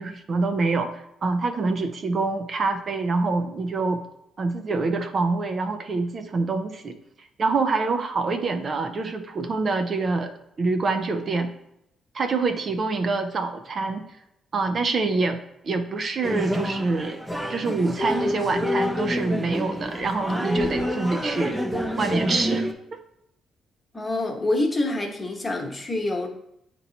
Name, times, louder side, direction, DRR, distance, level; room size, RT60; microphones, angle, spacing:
voice 1, 0.0-4.0 4.4-10.3 10.6-11.5 12.1-14.1 14.5-17.2 17.5-21.6 22.0-22.7, right 3 dB, 45° right, 6 dB, 0.5 m, -26 dB
sound 1, 16.2-22.7, left 1 dB, 5° right, 0.8 m, -28 dB
voice 2, 23.9-26.3, left 2 dB, 25° left, 1 dB, 1.2 m, -26 dB
8.5 x 3.0 x 4.0 m, 0.78 s
cardioid pair, 90°, 0 cm